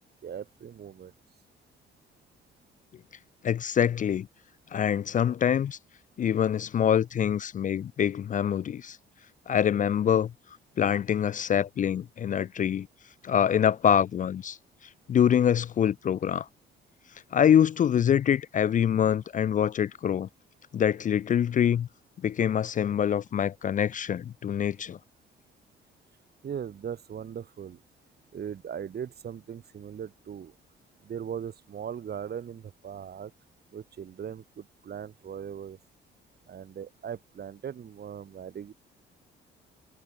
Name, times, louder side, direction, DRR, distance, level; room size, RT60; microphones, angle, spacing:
voice 1, 0.2-1.1 26.4-27.8 28.3-30.5 31.0-33.3 33.7-35.8 36.5-38.7, right 8 dB, 55° right, 3.7 m, -39 dB
voice 2, 3.4-4.3 4.7-5.8 6.2-9.0 9.5-10.3 10.8-12.9 13.2-14.6 15.1-16.5 17.3-20.3 20.7-21.9 22.2-25.0, left 9 dB, 40° left, 0.4 m, -25 dB
cardioid pair, 90°, 20 cm